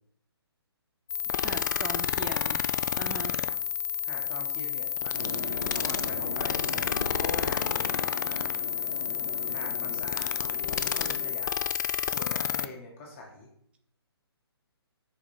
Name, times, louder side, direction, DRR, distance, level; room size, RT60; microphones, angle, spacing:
sound 1, 1.1-12.7, left 8 dB, 45° left, 0.4 m, -30 dB
voice 1, 1.3-2.6 2.9-3.4, right 5 dB, 10° right, 5 dB, 0.5 m, -40 dB
voice 2, 4.0-5.4 5.7-7.7 8.2-8.5 9.5-11.5 12.0-13.5, left 2 dB, 30° left, -1 dB, 1.5 m, -44 dB
sound 2, 5.1-11.3, right 1 dB, 65° right, 2.8 m, -40 dB
5.7 x 4.7 x 4.3 m, 0.69 s
figure-of-eight pair, 140°, 14 cm